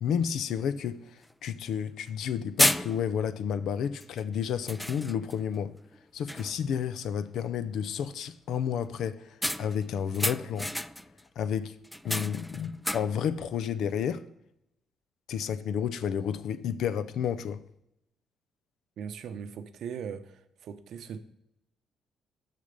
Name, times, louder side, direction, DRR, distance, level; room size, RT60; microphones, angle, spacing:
voice 1, 0.0-5.7 6.1-10.7 11.4-11.7 12.0-14.2 15.3-17.6, left 8 dB, 75° left, 0.5 m, -31 dB
sound 1, 0.7-0.8 1.2-1.3 2.1-2.3 2.6-3.3 4.0-4.2 4.7-5.5 5.9-6.0 6.3-6.7 9.4-11.2 11.8-13.3, left 1 dB, 5° left, 0.3 m, -31 dB
voice 2, 19.0-21.2, right 7 dB, 70° right, 0.7 m, -39 dB
6.7 x 6.7 x 5.2 m
cardioid pair, 90°, 0 cm